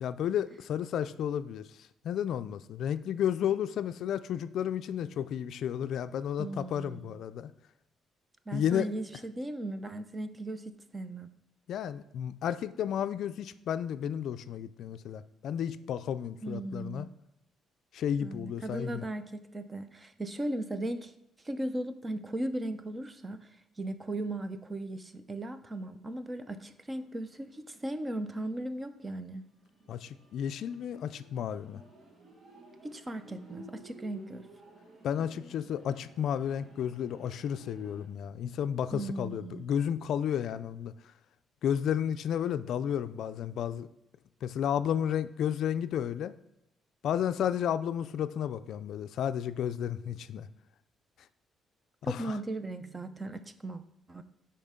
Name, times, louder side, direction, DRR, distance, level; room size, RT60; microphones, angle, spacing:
voice 1, 0.0-1.7 2.0-7.5 8.5-8.9 11.7-17.1 17.9-19.0 29.9-31.8 35.0-40.9 41.6-43.9 44.4-46.3 47.0-50.5 52.0-52.4, left 9 dB, 65° left, 12 dB, 0.3 m, -32 dB
voice 2, 6.4-7.1 8.5-10.6 10.9-11.3 16.4-17.1 18.2-21.1 21.4-23.5 23.8-29.4 32.8-34.5 38.9-39.6 52.0-53.8 54.1-54.2, right 1 dB, 20° right, 10 dB, 0.6 m, -37 dB
sound 1, 26.6-28.0 28.3-28.4 29.1-38.1, right 1 dB, 40° right, 1.6 m, -55 dB
10.5 x 4.3 x 3.7 m, 0.86 s
cardioid pair, 130°, 0 cm